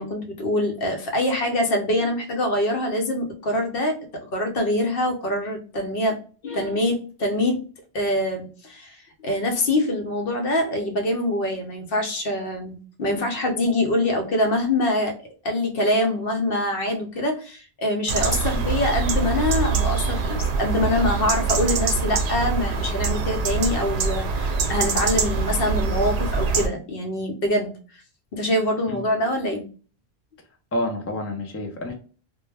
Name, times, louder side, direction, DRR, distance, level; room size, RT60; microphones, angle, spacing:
voice 1, 0.0-4.0 4.3-6.2 6.4-7.6 7.9-15.2 15.4-27.7 28.3-29.6, left 1 dB, 65° left, 3 dB, 0.9 m, -24 dB
sound 1, 18.1-26.7, right 4 dB, 85° right, 0.8 m, -24 dB
voice 2, 30.7-31.9, left 1 dB, 25° left, 2 dB, 0.3 m, -28 dB
2.2 x 2.1 x 3.2 m, 0.38 s
omnidirectional pair, 1.1 m